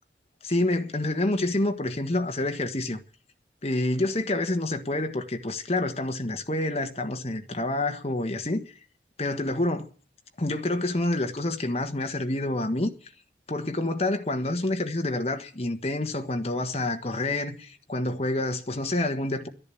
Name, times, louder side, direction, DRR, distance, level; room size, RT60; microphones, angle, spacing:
voice 1, 0.4-3.0 3.6-8.6 9.2-9.9 10.4-12.9 13.5-19.5, left 2 dB, 35° left, 1.4 m, -28 dB
12.0 x 10.5 x 8.5 m
head